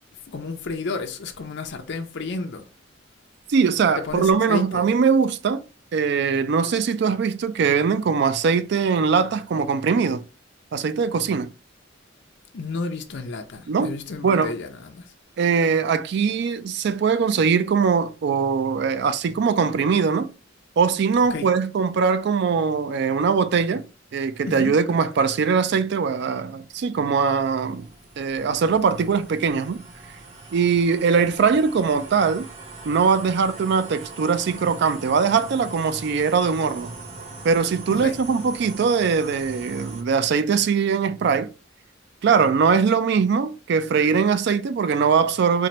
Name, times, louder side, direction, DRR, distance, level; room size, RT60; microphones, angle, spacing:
voice 1, 0.3-2.6 4.0-4.9 12.5-15.1 21.3-21.5 24.4-24.8 37.9-38.2, left 3 dB, 65° left, 0.5 m, -32 dB
voice 2, 3.5-5.6 5.9-10.2 10.7-11.5 13.7-13.9 14.2-14.5 15.4-20.3 20.8-23.8 24.1-27.9 28.2-29.8 30.5-32.5 32.8-36.9 37.4-41.5 42.2-45.7, right 5 dB, 60° right, 0.4 m, -21 dB
sound 1, 26.6-40.0, right 3 dB, 35° right, 0.7 m, -41 dB
4.3 x 2.5 x 3.0 m
head